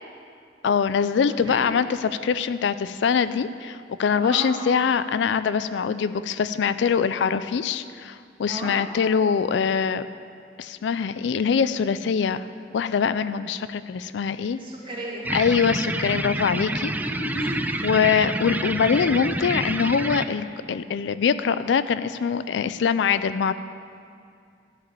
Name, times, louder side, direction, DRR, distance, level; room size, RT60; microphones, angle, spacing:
voice 1, 0.6-10.1 10.6-12.5 12.7-14.6 15.3-16.9 17.8-23.5, left 6 dB, 70° left, 13 dB, 0.4 m, -23 dB
voice 2, 1.3-1.8 4.2-4.5 8.5-8.7 14.5-15.2 16.9-17.8, right 1 dB, 30° right, -4 dB, 2.2 m, -34 dB
sound 1, 15.2-20.2, right 1 dB, 10° right, 0.3 m, -28 dB
13.5 x 5.0 x 8.3 m, 2.4 s
head